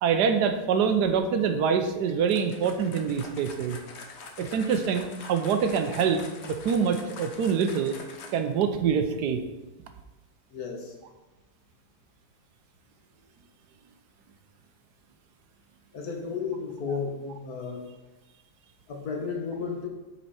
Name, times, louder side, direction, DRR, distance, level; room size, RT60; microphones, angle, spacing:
voice 1, 0.0-3.8 4.4-8.0 8.3-9.4, right 6 dB, 75° right, 7 dB, 1.3 m, -25 dB
sound 1, 2.2-8.6, left 4 dB, 50° left, 0.9 m, -44 dB
voice 2, 10.5-10.9 15.9-17.9 18.9-19.9, left 5 dB, 65° left, 1 dB, 1.7 m, -33 dB
7.3 x 5.6 x 4.2 m, 1.1 s
omnidirectional pair, 1.8 m